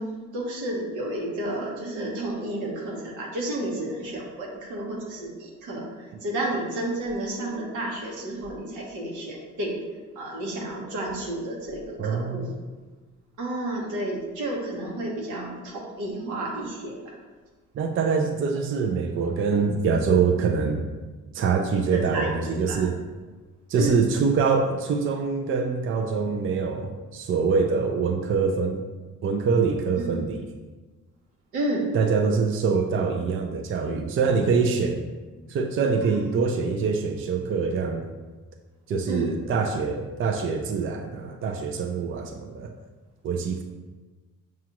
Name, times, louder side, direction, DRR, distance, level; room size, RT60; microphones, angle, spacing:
voice 1, 0.0-9.8 10.1-12.5 13.4-17.1 21.9-22.9 23.8-24.0 30.0-30.2 31.5-31.9 36.0-36.4 39.1-39.3, right 1 dB, 85° right, -2 dB, 1.1 m, -31 dB
voice 2, 12.0-12.5 17.7-20.8 21.3-22.9 23.7-28.8 29.2-30.4 31.9-35.0 35.5-38.1 38.9-42.7 43.2-43.6, right 5 dB, 45° right, 4 dB, 0.4 m, -24 dB
6.0 x 2.4 x 2.9 m, 1.3 s
cardioid pair, 90°, 30 cm